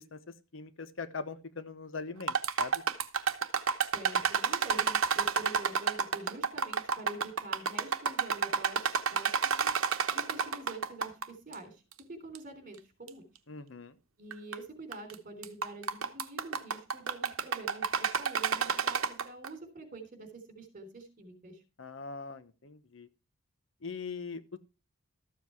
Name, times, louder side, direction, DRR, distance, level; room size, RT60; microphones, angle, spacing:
voice 1, 0.5-2.7 13.5-13.9 21.8-23.1 23.8-24.6, left 4 dB, 60° left, 13 dB, 1.0 m, -41 dB
sound 1, 2.2-11.2 11.5-11.6 12.3-12.4 13.1-13.2 14.3-14.6 14.9-15.1 15.4-19.5, right 6 dB, 75° right, 1.0 m, -30 dB
voice 2, 3.9-8.8 9.1-9.3 9.6-9.7 10.1-11.8 12.1-13.2 14.2-21.6, right 2 dB, 40° right, 6 dB, 3.5 m, -46 dB
13.5 x 7.6 x 4.6 m, 0.31 s
head